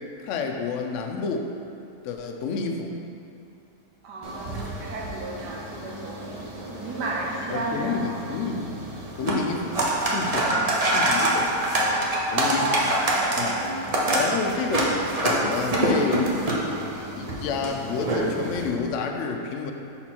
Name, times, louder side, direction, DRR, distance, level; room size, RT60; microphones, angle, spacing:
voice 1, 0.2-1.5 2.0-3.0 7.5-8.8 9.2-9.8 10.1-10.6 10.9-12.1 12.3-12.8 13.4-13.6 14.2-14.8 15.2-16.4 17.1-19.7, left 5 dB, 75° left, 4 dB, 0.7 m, -29 dB
voice 2, 4.0-8.2 10.4-11.1 12.3-13.1 13.3-13.8, right 2 dB, 90° right, -1 dB, 1.4 m, -33 dB
sound 1, 4.2-18.7, right 1 dB, 55° right, 0.4 m, -26 dB
4.3 x 4.3 x 5.8 m, 2.6 s
omnidirectional pair, 1.8 m